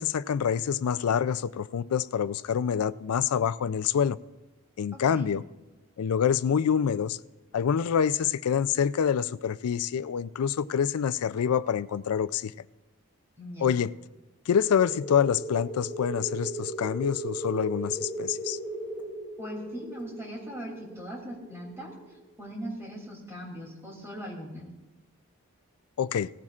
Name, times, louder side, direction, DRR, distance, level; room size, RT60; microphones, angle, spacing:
voice 1, 0.0-4.2 4.8-5.4 6.0-7.2 7.5-12.5 13.6-13.9 14.5-18.6 26.0-26.3, left 8 dB, 90° left, 0.4 m, -26 dB
voice 2, 4.9-5.3 13.4-13.7 19.4-24.7, equal, 10° right, 2.8 m, -40 dB
sound 1, 14.6-23.0, right 1 dB, 5° left, 4.0 m, -38 dB
18.0 x 15.0 x 2.5 m
head